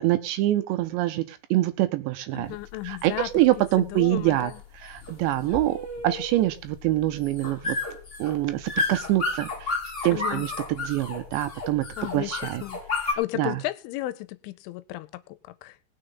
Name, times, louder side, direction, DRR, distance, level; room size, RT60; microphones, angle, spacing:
voice 1, 0.0-2.6 2.8-5.8 6.0-7.8 8.2-9.8 10.0-11.9 12.1-12.6 13.0-13.6, right 16 dB, 80° right, 2.7 m, -25 dB
voice 2, 2.3-3.3 3.8-4.6 10.1-10.5 12.0-12.3 12.6-12.8 13.1-15.7, left 17 dB, 85° left, 3.2 m, -33 dB
sound 1, 2.4-13.1, left 3 dB, 30° left, 1.1 m, -32 dB
19.5 x 6.5 x 5.4 m
omnidirectional pair, 5.6 m